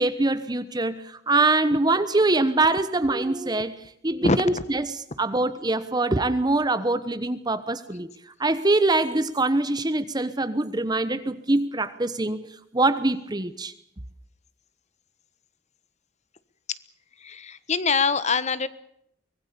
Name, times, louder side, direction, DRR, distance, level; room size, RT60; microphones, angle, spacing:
voice 1, 0.0-3.8 4.0-4.9 5.2-8.1 8.4-12.5 12.7-13.7, right 2 dB, 25° right, 12 dB, 1.1 m, -23 dB
voice 2, 17.2-18.7, left 4 dB, 40° left, 15 dB, 1.3 m, -24 dB
24.5 x 20.5 x 7.0 m, 0.75 s
head